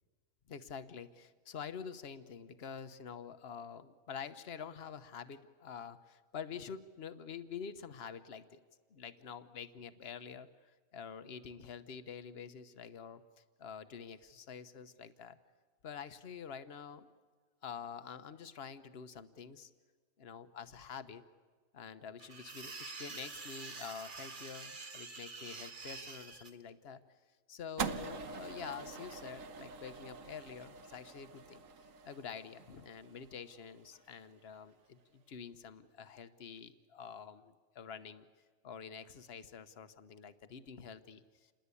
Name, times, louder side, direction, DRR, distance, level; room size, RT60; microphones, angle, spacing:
voice 1, 0.5-8.6 8.9-15.4 15.8-17.1 17.6-19.7 20.2-21.2 21.7-27.0 27.5-31.6 32.0-38.3 38.6-41.5, left 7 dB, 50° left, 11 dB, 1.1 m, -47 dB
sound 1, 22.2-26.5, right 4 dB, 35° right, 1.3 m, -47 dB
sound 2, 27.8-34.1, right 6 dB, 65° right, 1.4 m, -44 dB
28.0 x 21.0 x 8.4 m, 1.5 s
omnidirectional pair, 1.5 m